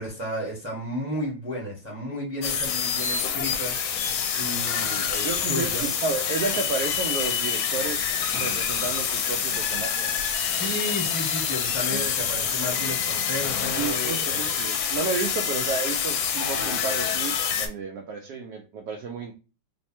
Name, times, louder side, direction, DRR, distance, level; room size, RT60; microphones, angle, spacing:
voice 1, 0.0-3.8 4.0-5.9 10.4-14.5 15.6-15.7, left 1 dB, 10° right, 0.8 m, -33 dB
sound 1, 2.4-17.7, left 7 dB, 80° left, 1.3 m, -27 dB
Chirp tweet, 2.7-16.3, right 3 dB, 45° right, 1.0 m, -46 dB
voice 2, 5.2-8.0 8.4-10.2 11.9-12.0 13.8-19.3, right 4 dB, 80° right, 0.8 m, -31 dB
3.2 x 2.1 x 4.2 m
omnidirectional pair, 2.2 m